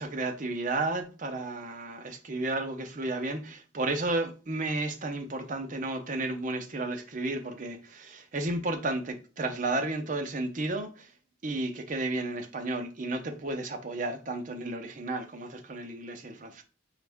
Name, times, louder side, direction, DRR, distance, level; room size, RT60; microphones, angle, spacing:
voice 1, 0.0-11.1 11.4-16.6, right 2 dB, 40° right, 0.6 m, -33 dB
5.2 x 2.4 x 3.4 m
head